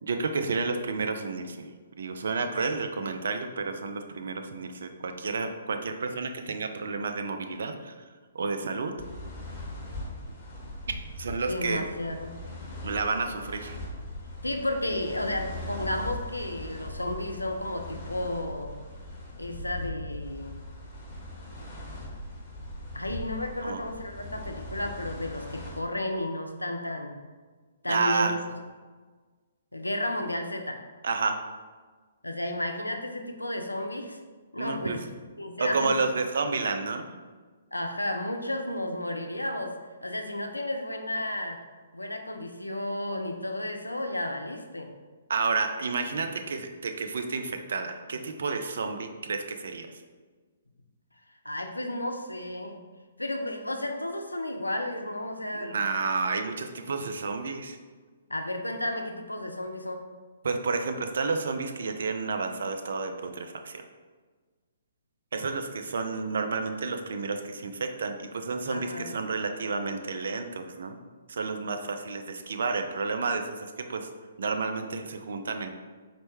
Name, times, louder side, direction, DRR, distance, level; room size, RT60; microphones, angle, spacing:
voice 1, 0.0-1.7 2.0-7.9 8.3-8.9 11.1-11.8 12.8-13.8 23.6-23.8 27.9-28.3 31.0-31.4 34.6-35.0 35.6-37.1 45.3-49.9 55.5-57.8 60.4-63.8 65.3-71.0 71.3-74.1 74.4-75.7, right 4 dB, 60° right, 6 dB, 0.3 m, -30 dB
sound 1, 9.0-25.8, left 1 dB, 30° left, 0.9 m, -40 dB
voice 2, 11.5-12.3 14.4-18.7 19.4-20.6 22.9-27.2 27.8-28.3 29.7-30.8 32.2-34.2 34.5-35.0 35.4-36.1 37.7-39.7 40.0-41.6 41.9-44.9 51.4-52.8 53.2-55.8 58.3-60.0 68.7-69.1, left 1 dB, 90° left, 5 dB, 0.4 m, -32 dB
4.2 x 2.1 x 3.0 m, 1.4 s
figure-of-eight pair, 125°, 0 cm